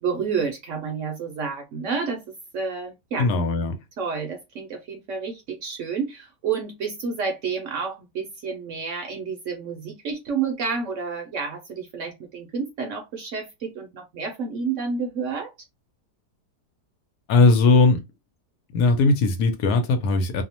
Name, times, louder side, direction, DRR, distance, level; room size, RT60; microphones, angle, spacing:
voice 1, 0.0-2.2 2.5-3.3 4.0-15.5, right 5 dB, 65° right, 0.8 m, -30 dB
voice 2, 3.2-3.8 17.3-18.0 18.7-20.4, left 3 dB, 80° left, 1.1 m, -19 dB
2.8 x 2.0 x 2.8 m
omnidirectional pair, 1.7 m